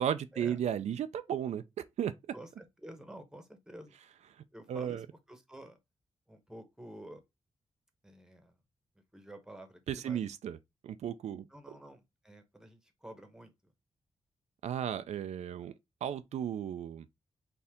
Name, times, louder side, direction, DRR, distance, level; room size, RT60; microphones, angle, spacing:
voice 1, 0.0-1.6 2.0-2.1 4.7-5.1 9.9-10.6 10.8-11.5 14.6-15.7 16.0-17.1, right 9 dB, 85° right, 0.4 m, -34 dB
voice 2, 2.3-3.9 4.5-5.8 6.3-7.2 8.0-8.6 9.1-10.3 11.5-13.7, right 1 dB, 5° right, 1.0 m, -50 dB
4.4 x 2.8 x 3.5 m
wide cardioid pair, 115°, 11 cm